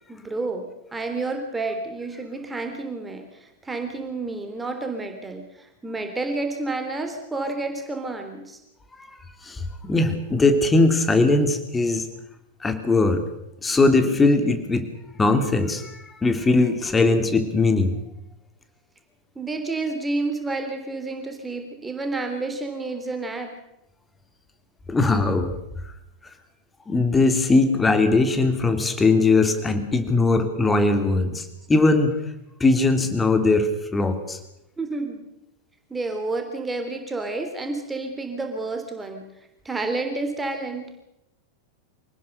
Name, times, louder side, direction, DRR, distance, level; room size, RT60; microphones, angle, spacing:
voice 1, 0.1-8.6 16.8-16.9 19.3-23.6 34.8-35.2 35.9-39.2 39.6-40.9, right 3 dB, 10° right, 5 dB, 3.4 m, -30 dB
voice 2, 9.4-12.1 12.6-13.2 13.6-14.9 15.2-17.9 24.9-25.5 26.9-32.2 32.6-34.4, left 3 dB, 15° left, 7 dB, 2.9 m, -20 dB
26.5 x 18.5 x 6.8 m, 0.86 s
figure-of-eight pair, 90°, 0 cm